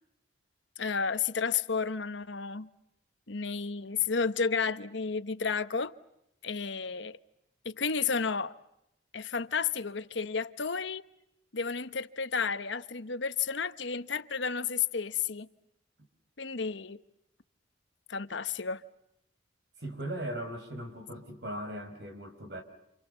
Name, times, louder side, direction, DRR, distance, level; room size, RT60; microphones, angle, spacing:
voice 1, 0.8-2.7 3.3-5.9 6.4-7.2 7.6-8.6 9.1-11.0 11.5-15.5 16.4-17.0 18.1-18.8, left 5 dB, 70° left, 1.1 m, -32 dB
voice 2, 19.8-22.6, right 1 dB, 60° right, 5.1 m, -38 dB
29.0 x 28.0 x 6.9 m
head